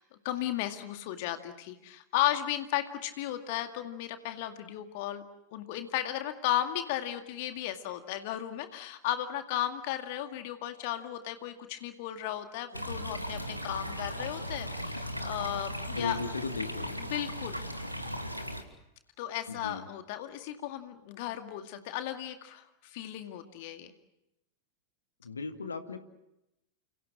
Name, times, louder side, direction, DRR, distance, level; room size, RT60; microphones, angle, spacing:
voice 1, 0.0-5.2 5.5-16.2 17.0-17.6 19.2-23.9, left 12 dB, 50° left, 7 dB, 2.1 m, -35 dB
sound 1, 12.7-18.6, equal, 90° right, 2.7 m, -37 dB
voice 2, 15.9-17.1 19.5-19.8 25.2-26.0, left 4 dB, 75° left, 8 dB, 2.2 m, -36 dB
30.0 x 27.5 x 6.3 m, 0.89 s
figure-of-eight pair, 90°, 0 cm